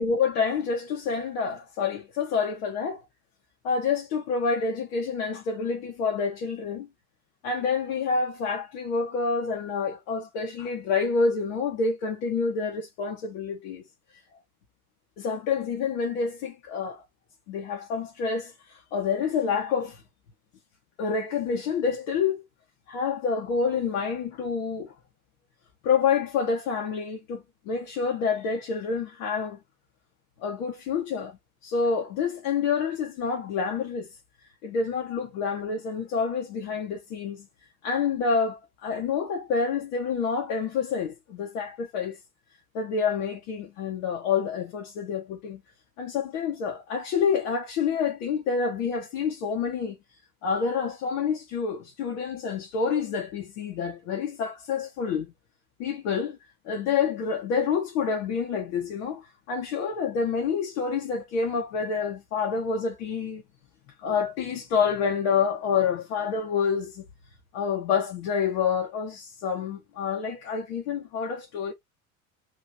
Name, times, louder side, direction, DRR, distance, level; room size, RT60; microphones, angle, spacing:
voice 1, 0.0-3.0 3.6-6.9 7.4-13.8 15.2-17.0 17.5-20.0 21.0-22.4 22.9-24.9 25.8-29.6 30.4-34.1 34.6-37.5 37.8-42.2 42.7-45.6 46.0-50.0 50.4-55.3 55.8-56.4 56.6-59.2 59.5-63.4 64.0-67.0 67.5-71.7, left 5 dB, 55° left, 1.3 m, -28 dB
3.3 x 3.0 x 4.0 m
figure-of-eight pair, 70°, 45 cm